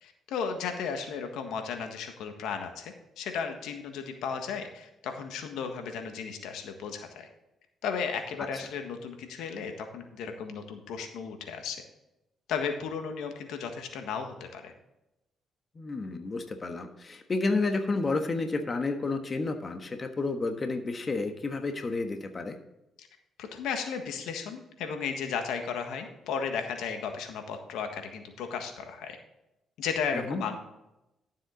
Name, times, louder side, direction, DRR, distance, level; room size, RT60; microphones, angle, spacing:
voice 1, 0.0-7.3 7.8-11.8 12.5-14.7 23.0-23.1 23.4-29.2 29.8-30.6, left 6 dB, 90° left, 5 dB, 1.5 m, -35 dB
voice 2, 15.7-22.6 30.1-30.4, left 3 dB, 35° left, 6 dB, 1.3 m, -31 dB
12.5 x 7.5 x 3.9 m, 0.92 s
cardioid pair, 90°, 0 cm